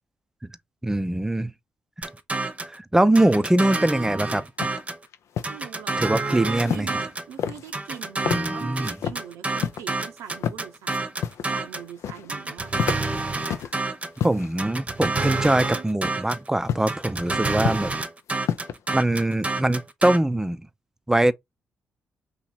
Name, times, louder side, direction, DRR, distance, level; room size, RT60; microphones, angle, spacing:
voice 1, 0.8-1.5 2.7-4.4 6.0-6.9 8.2-9.0 14.2-17.9 18.9-20.7 21.1-21.3, right 1 dB, 10° right, 0.5 m, -22 dB
sound 1, 2.0-2.8 3.2-5.0 5.4-7.3 7.7-11.9 12.3-14.2 14.6-16.5 16.9-20.2, right 3 dB, 25° right, 0.8 m, -28 dB
sound 2, 4.6-4.8 5.1-5.6 6.6-7.1 7.4-8.0 8.3-8.5 8.8-9.2 9.6-9.8 10.3-10.6 10.9-11.5 11.8-12.4 12.7-13.7 14.2-14.6 15.2-15.7 16.7-16.9 17.4-18.0 18.3-18.8, left 8 dB, 70° left, 0.5 m, -29 dB
voice 2, 5.5-12.9, right 9 dB, 80° right, 0.7 m, -42 dB
3.0 x 2.9 x 4.0 m
supercardioid pair, 50°, 5 cm